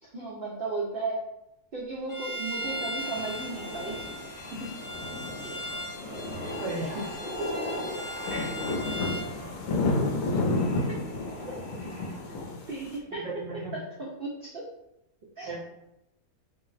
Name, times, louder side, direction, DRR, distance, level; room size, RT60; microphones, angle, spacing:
voice 1, 0.0-1.2 1.7-4.1 5.4-5.6 6.4-7.0 8.3-8.8 10.9-11.0 12.7-13.3 14.0-14.6 15.4-15.6, right 3 dB, 80° right, -4 dB, 0.5 m, -35 dB
Bowed string instrument, 2.1-9.3, equal, 20° left, 0.5 m, -38 dB
sound 1, 2.6-12.5, equal, 45° left, 0.8 m, -40 dB
sound 2, 3.0-13.0, left 2 dB, 70° left, 0.9 m, -33 dB
voice 2, 6.6-7.0 7.4-7.5 13.1-13.7 15.4-15.6, right 1 dB, 60° right, -3 dB, 0.9 m, -35 dB
2.7 x 2.0 x 3.9 m, 0.86 s
omnidirectional pair, 1.6 m